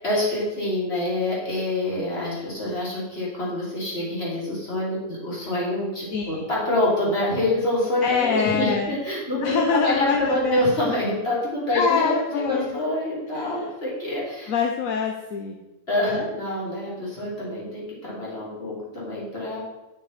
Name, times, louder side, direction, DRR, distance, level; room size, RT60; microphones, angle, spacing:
voice 1, 0.0-14.5 15.9-19.6, left 1 dB, 45° left, -6 dB, 3.0 m, -26 dB
voice 2, 6.1-6.4 8.0-8.9 9.4-10.9 11.7-12.8 13.3-13.7 14.5-15.6 16.0-16.3, left 5 dB, 75° left, 2 dB, 1.1 m, -25 dB
8.9 x 6.0 x 4.1 m, 1.0 s
omnidirectional pair, 1.4 m